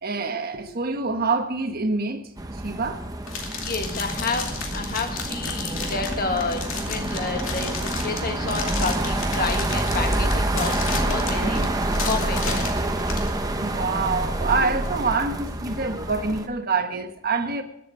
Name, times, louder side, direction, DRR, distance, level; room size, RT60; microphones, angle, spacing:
voice 1, 0.0-2.2 2.5-3.0 13.5-17.6, right 4 dB, 40° right, 1.3 m, -26 dB
sound 1, 2.4-16.5, right 1 dB, 15° right, 0.8 m, -27 dB
sound 2, 3.3-13.3, left 5 dB, 65° left, 2.5 m, -33 dB
voice 2, 3.6-12.6, left 3 dB, 40° left, 1.5 m, -30 dB
21.5 x 7.6 x 5.1 m
head